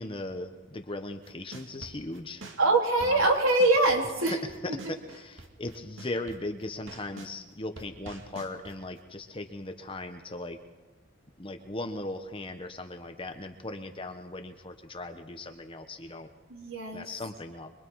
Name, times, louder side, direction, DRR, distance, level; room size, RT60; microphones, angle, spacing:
voice 1, 0.0-2.4 3.0-3.2 4.3-10.6 11.4-16.3 16.9-17.7, left 2 dB, 25° left, 6 dB, 1.0 m, -38 dB
sound 1, 1.2-7.3 7.8-9.0, right 2 dB, 65° right, 2.3 m, -47 dB
voice 2, 2.6-4.4 16.5-17.1, right 2 dB, 80° right, 0 dB, 3.8 m, -23 dB
25.5 x 22.5 x 4.7 m, 1.2 s
head